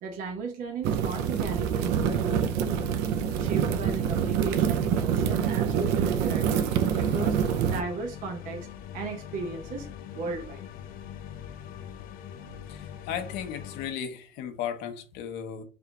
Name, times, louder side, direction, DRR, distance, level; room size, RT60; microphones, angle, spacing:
voice 1, 0.0-3.1 3.4-6.7 7.0-7.4 7.6-8.7 8.9-9.9 10.1-10.7 12.4-13.0, right 4 dB, 55° right, 0.9 m, -36 dB
sound 1, 0.8-7.8, right 8 dB, 85° right, 0.5 m, -26 dB
sound 2, 6.3-13.9, left 9 dB, 55° left, 0.5 m, -42 dB
voice 2, 12.7-15.6, left 8 dB, 80° left, 0.8 m, -35 dB
3.5 x 2.8 x 3.6 m
cardioid pair, 170°, 17 cm